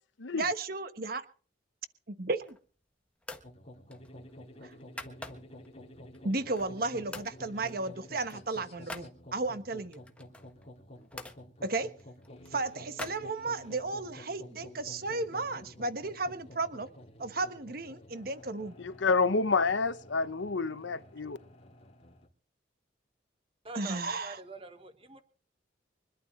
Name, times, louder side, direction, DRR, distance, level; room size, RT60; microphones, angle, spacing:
voice 1, 0.3-1.2 2.1-2.6 4.6-4.7 6.2-10.0 11.6-11.9 12.5-16.9 17.2-18.7 23.7-24.4, right 3 dB, 50° right, 1.2 m, -34 dB
sound 1, 2.2-2.8 3.2-3.5 3.9-5.7 6.1-6.8 7.1-7.4 7.7-9.1 9.9-11.4 12.0-13.8, left 2 dB, 5° left, 1.4 m, -46 dB
sound 2, 3.4-22.3, left 1 dB, 35° left, 2.8 m, -51 dB
voice 2, 18.8-21.4, left 4 dB, 80° left, 0.9 m, -28 dB
voice 3, 23.6-25.2, right 3 dB, 30° right, 1.2 m, -45 dB
25.0 x 11.5 x 3.2 m
head